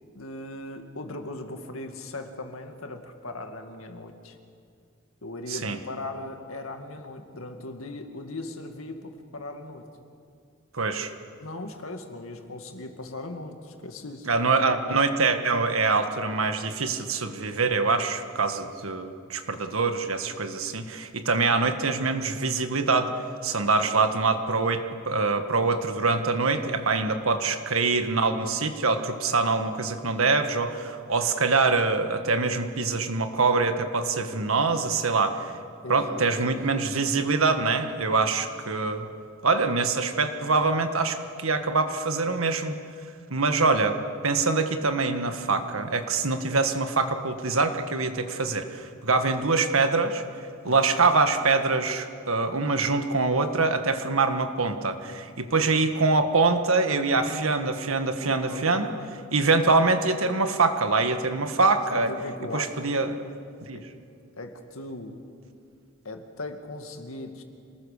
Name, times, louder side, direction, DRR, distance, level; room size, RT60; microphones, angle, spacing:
voice 1, 0.1-4.4 5.2-9.9 11.4-14.3 26.5-26.9 35.8-36.9 50.6-51.1 56.9-57.8 58.2-59.1 61.9-62.8 63.7-63.9 64.4-65.2 66.0-67.4, left 2 dB, 80° left, 5 dB, 2.1 m, -39 dB
voice 2, 10.7-11.1 14.3-23.1 23.4-35.5 35.9-39.1 39.4-42.8 43.3-44.0 44.2-50.2 50.6-58.9 59.3-62.1 62.5-63.2 63.7-63.8, right 3 dB, 80° right, 7 dB, 1.6 m, -24 dB
26.5 x 19.5 x 6.7 m, 2.4 s
head